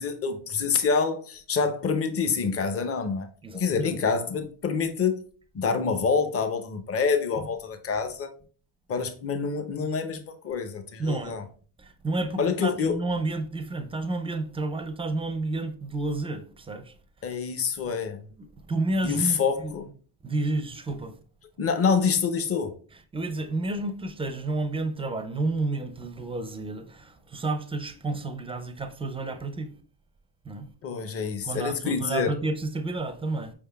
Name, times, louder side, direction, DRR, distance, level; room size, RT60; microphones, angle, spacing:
voice 1, 0.0-3.3 3.5-5.2 5.5-8.3 8.9-11.4 12.4-13.0 17.2-18.2 19.0-19.9 21.6-22.7 30.8-32.3, left 5 dB, 30° left, 0.6 m, -26 dB
voice 2, 3.4-4.0 11.0-11.4 11.8-16.9 17.2-17.3 18.4-19.7 20.2-21.2 23.1-29.7 30.4-30.7 31.4-33.5, right 2 dB, 10° right, 0.4 m, -31 dB
4.8 x 3.5 x 2.2 m
supercardioid pair, 80°, 49 cm